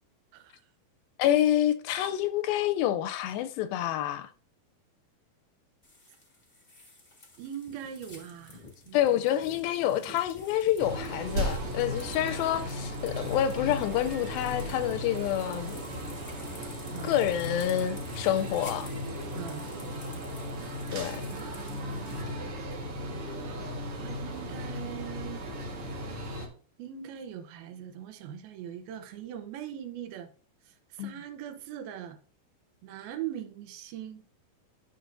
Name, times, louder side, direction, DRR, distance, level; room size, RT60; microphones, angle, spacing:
voice 1, 1.2-4.3 8.9-15.7 17.0-18.9 20.9-21.2 31.0-31.1, left 11 dB, 85° left, 2.3 m, -28 dB
sound 1, 5.8-22.4, left 2 dB, 20° left, 1.2 m, -50 dB
voice 2, 7.4-9.2 16.9-17.2 19.3-19.7 21.3-22.4 24.0-25.5 26.8-30.3 30.7-32.2 32.8-34.2, right 10 dB, 80° right, 2.7 m, -41 dB
sound 2, 10.8-26.5, equal, 55° right, 1.7 m, -36 dB
11.0 x 6.6 x 2.5 m
omnidirectional pair, 4.3 m